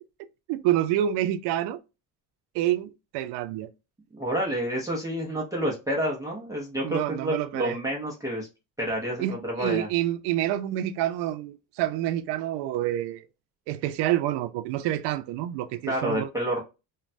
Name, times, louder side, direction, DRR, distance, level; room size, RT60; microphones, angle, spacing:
voice 1, 0.5-1.8 2.5-3.7 6.8-7.8 9.2-13.3 13.7-16.3, right 12 dB, 85° right, 0.5 m, -28 dB
voice 2, 4.1-8.5 8.8-9.9 15.9-16.6, equal, 10° right, 0.5 m, -29 dB
3.1 x 2.2 x 2.5 m
cardioid pair, 170°, 40 cm